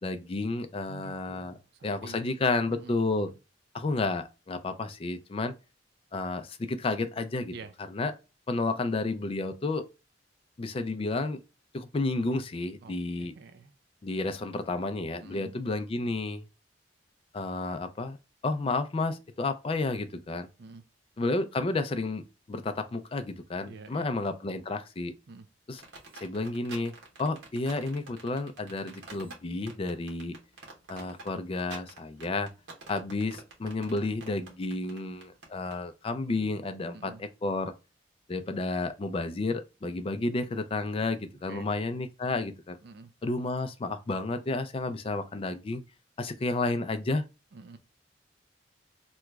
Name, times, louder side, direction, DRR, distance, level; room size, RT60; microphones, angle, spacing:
voice 1, 0.0-1.6 1.8-3.3 3.7-5.6 6.1-7.5 7.9-8.1 8.5-9.8 10.6-11.4 11.7-13.3 14.0-16.5 17.3-18.2 18.4-20.5 21.2-25.1 25.7-25.8 26.2-26.9 27.2-30.4 30.9-32.5 32.9-37.7 38.3-42.8 43.2-45.8 46.2-47.2, left 3 dB, 30° left, 0.4 m, -31 dB
voice 2, 0.9-2.2 2.7-3.1 7.5-7.7 12.8-13.7 15.2-15.5 20.6-20.8 23.6-24.1 25.3-25.5 36.9-37.2 41.5-41.7 42.8-43.1 47.5-47.8, right 4 dB, 60° right, 0.4 m, -48 dB
sound 1, 25.8-35.8, right 3 dB, 85° right, 1.2 m, -47 dB
3.0 x 2.3 x 3.3 m
head